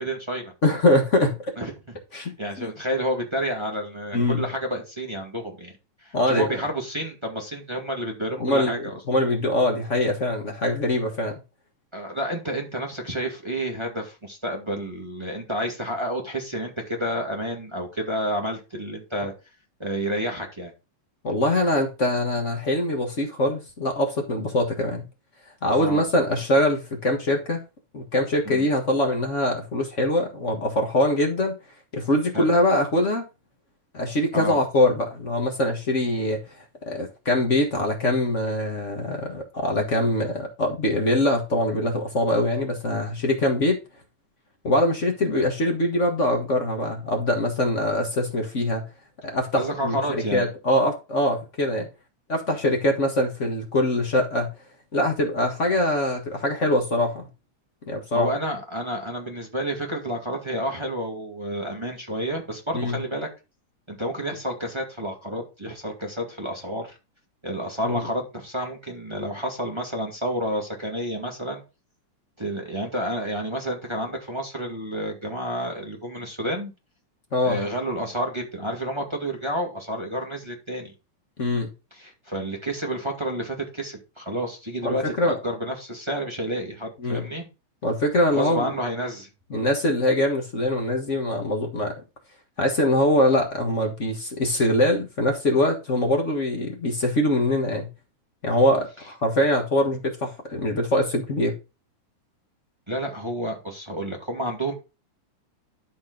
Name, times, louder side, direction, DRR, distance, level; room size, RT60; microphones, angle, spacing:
voice 1, 0.0-0.5 1.6-1.7 2.1-5.7 6.0-9.0 11.9-19.3 19.8-20.7 25.8-26.0 28.4-28.6 32.3-32.5 34.3-34.5 49.6-50.4 58.1-63.3 63.9-66.9 67.4-71.6 72.4-76.7 77.4-80.9 82.0-87.4 88.3-89.3 102.9-104.7, equal, 15° right, 1 dB, 1.3 m, -30 dB
voice 2, 0.6-1.4 2.1-2.7 4.1-4.4 6.1-6.5 8.4-11.3 21.2-25.0 25.6-27.6 27.9-31.6 31.9-33.2 33.9-36.4 36.9-43.8 44.6-48.9 49.2-51.9 52.3-54.5 54.9-57.3 57.9-58.3 62.7-63.0 67.8-68.1 77.3-77.6 81.4-81.7 84.8-85.4 87.0-87.3 87.8-88.7 89.5-91.9 92.6-97.9 98.4-101.5, left 1 dB, 40° left, 2 dB, 1.0 m, -23 dB
12.5 x 4.4 x 3.9 m, 0.29 s
omnidirectional pair, 3.5 m